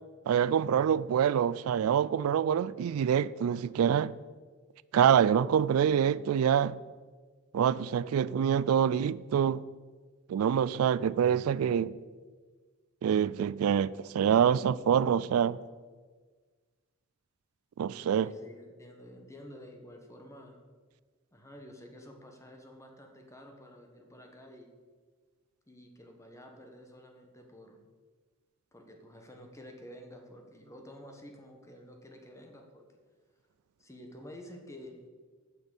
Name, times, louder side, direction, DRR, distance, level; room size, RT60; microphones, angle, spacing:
voice 1, 0.3-4.1 4.9-6.8 7.5-9.6 10.3-11.9 13.0-15.6 17.8-18.3, right 8 dB, 85° right, 0.3 m, -26 dB
voice 2, 17.9-20.6 21.3-24.7 25.7-27.8 28.7-32.9 33.8-35.0, equal, 15° left, 1.3 m, -50 dB
8.7 x 6.2 x 8.2 m
head